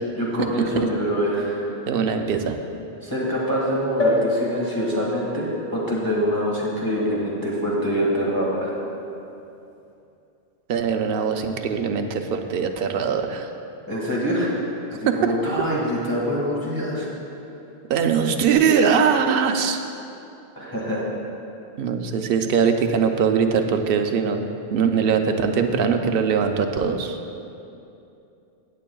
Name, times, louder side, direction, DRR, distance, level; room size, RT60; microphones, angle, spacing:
voice 1, 0.1-1.7 3.0-8.7 13.9-14.6 14.9-17.1 20.5-21.0, equal, 20° left, -6 dB, 1.7 m, -25 dB
voice 2, 1.9-2.6 10.7-13.5 15.1-15.3 17.9-19.8 21.8-24.5 24.7-27.2, right 6 dB, 60° right, 5 dB, 0.7 m, -21 dB
sound 1, 4.0-7.7 8.3-8.4 8.6-8.7, left 1 dB, 45° left, 1.8 m, -29 dB
17.5 x 7.5 x 2.3 m, 2.7 s
omnidirectional pair, 1.1 m